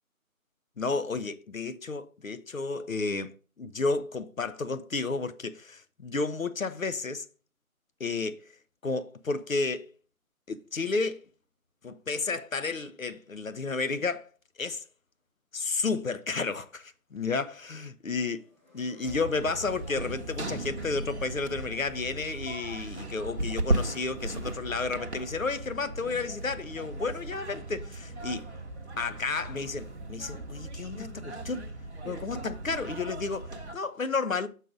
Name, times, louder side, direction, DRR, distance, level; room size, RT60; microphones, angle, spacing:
voice 1, 0.8-7.2 8.0-8.5 8.8-9.9 10.5-11.2 11.8-14.3 14.6-14.8 15.5-18.4 18.7-28.5 29.0-31.7 32.0-34.5, left 4 dB, 65° left, 0.7 m, -32 dB
sound 1, 18.0-30.0, left 2 dB, 30° left, 1.7 m, -59 dB
sound 2, 19.1-33.8, right 2 dB, 50° right, 0.8 m, -36 dB
6.4 x 4.1 x 5.0 m
figure-of-eight pair, 165°, 43 cm